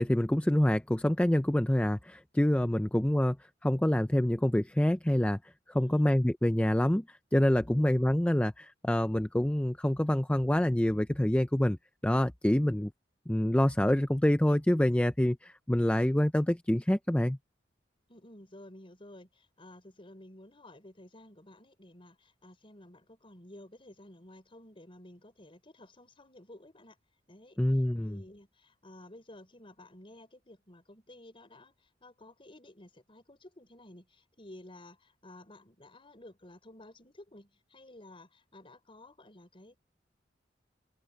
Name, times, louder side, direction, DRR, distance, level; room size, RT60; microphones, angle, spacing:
voice 1, 0.0-3.4 3.6-5.4 5.7-11.8 12.0-12.9 13.3-17.4 27.6-28.2, left 1 dB, 5° left, 0.5 m, -26 dB
voice 2, 5.7-6.1 7.7-7.9 12.6-12.8 18.1-27.0 27.3-27.6 28.0-39.8, left 1 dB, 30° left, 5.4 m, -53 dB
head